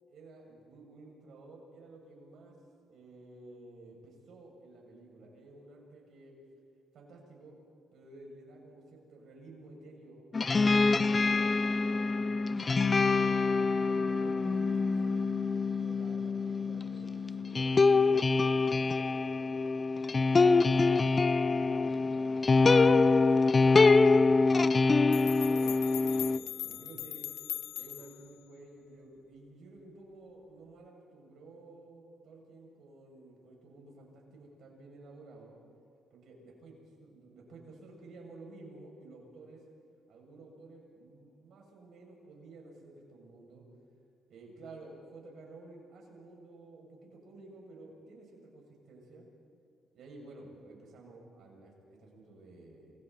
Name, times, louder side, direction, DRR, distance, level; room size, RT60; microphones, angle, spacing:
voice 1, 0.1-2.6 2.9-6.4 6.9-7.6 7.9-13.1 13.6-15.3 15.5-21.0 21.6-24.6 25.3-27.3 27.7-35.6 36.1-39.6 40.1-43.6 44.3-49.3 49.9-52.9, right 2 dB, 70° right, -1 dB, 7.1 m, -52 dB
sound 1, 10.3-26.4, left 3 dB, 30° left, 0.6 m, -25 dB
sound 2, 25.1-28.3, left 12 dB, 80° left, 0.5 m, -40 dB
28.5 x 23.0 x 4.3 m, 2.2 s
cardioid pair, 90°, 0 cm